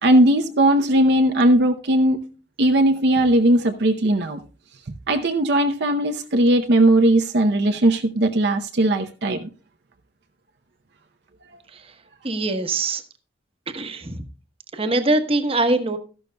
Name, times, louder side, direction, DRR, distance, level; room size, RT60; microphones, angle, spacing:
voice 1, 0.0-2.2 2.6-4.4 5.1-9.5, right 1 dB, 60° right, 5 dB, 0.7 m, -18 dB
voice 2, 12.2-13.0 13.7-14.2 14.7-16.0, right 2 dB, 30° right, 8 dB, 1.1 m, -23 dB
13.5 x 11.5 x 2.2 m, 0.37 s
head